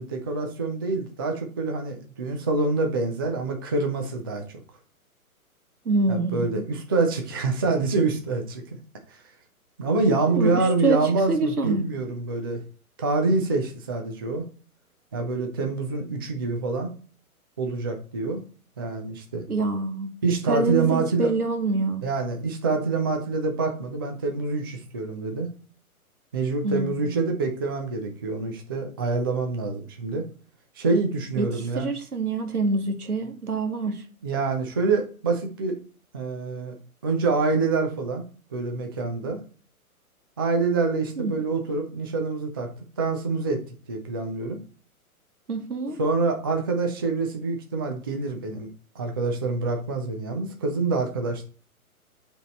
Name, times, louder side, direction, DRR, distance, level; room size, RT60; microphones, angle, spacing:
voice 1, 0.0-4.4 6.1-8.8 9.8-12.6 13.0-14.5 15.1-16.9 17.6-18.4 18.8-19.4 20.2-21.3 22.0-25.5 26.3-30.3 30.8-31.9 34.2-35.7 36.1-36.8 37.0-38.2 38.5-39.4 40.4-42.7 43.0-43.6 43.9-44.6 46.0-48.7 49.0-51.4, right 3 dB, 20° right, 0.3 m, -26 dB
voice 2, 5.8-6.6 10.3-11.8 19.5-20.1 20.5-22.0 26.6-27.2 31.4-34.0 41.2-41.3 45.5-46.0, right 3 dB, 85° right, 1.4 m, -26 dB
7.1 x 3.5 x 4.3 m
figure-of-eight pair, 120°, 44 cm